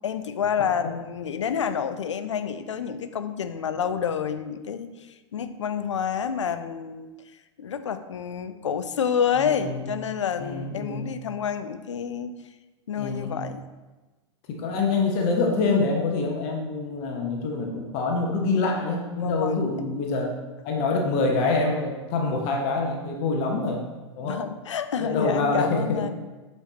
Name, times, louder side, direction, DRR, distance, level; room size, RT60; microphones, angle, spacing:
voice 1, 0.0-4.9 5.3-7.1 7.6-12.3 12.9-13.6 19.2-19.6 24.2-26.3, left 7 dB, 75° left, 11 dB, 0.5 m, -28 dB
voice 2, 9.3-9.8 10.4-11.1 13.0-13.4 14.5-20.4 20.6-23.8 24.2-24.4 25.0-26.0, left 3 dB, 45° left, 1 dB, 1.0 m, -26 dB
8.3 x 4.5 x 2.8 m, 1.2 s
figure-of-eight pair, 95°, 15 cm